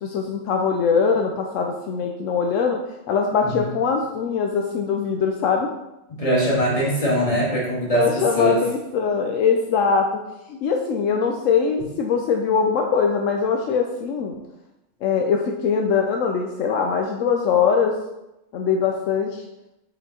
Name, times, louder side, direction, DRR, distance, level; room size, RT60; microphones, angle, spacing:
voice 1, 0.0-2.8 3.1-5.7 7.9-10.2 10.5-14.3 15.0-17.9 18.5-19.4, left 6 dB, 75° left, 2 dB, 0.9 m, -22 dB
voice 2, 6.1-8.7, right 1 dB, 25° left, -6 dB, 2.0 m, -22 dB
5.2 x 4.8 x 4.2 m, 0.93 s
omnidirectional pair, 1.4 m